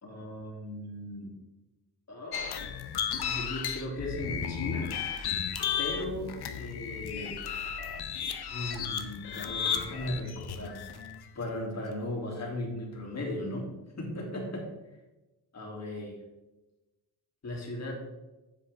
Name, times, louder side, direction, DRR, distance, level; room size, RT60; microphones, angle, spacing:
voice 1, 0.0-1.3 2.1-4.9 5.8-7.4 8.5-10.8 11.3-13.7 14.0-14.7 15.5-16.1 17.4-17.9, left 1 dB, 35° left, 0 dB, 2.4 m, -37 dB
sound 1, 2.3-11.2, left 8 dB, 60° left, 0.9 m, -34 dB
10.5 x 7.4 x 3.4 m, 1.1 s
cardioid pair, 135°, 44 cm